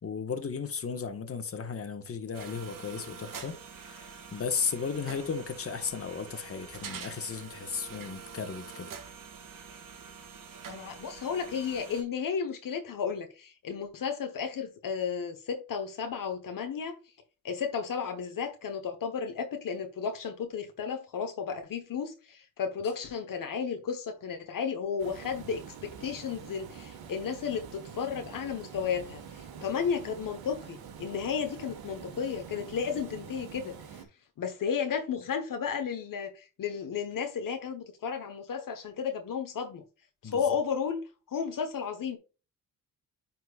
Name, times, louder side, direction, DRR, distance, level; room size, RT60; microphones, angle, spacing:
voice 1, 0.0-8.9 40.2-40.4, left 6 dB, 40° left, 1.4 m, -35 dB
sound 1, 2.3-12.0, right 6 dB, 65° right, 1.7 m, -46 dB
voice 2, 10.7-16.9 17.4-34.0 34.4-39.8 40.2-42.2, left 6 dB, 65° left, 1.2 m, -33 dB
Water, 25.0-34.1, right 7 dB, 85° right, 1.6 m, -46 dB
9.6 x 4.4 x 2.4 m
cardioid pair, 100°, 36 cm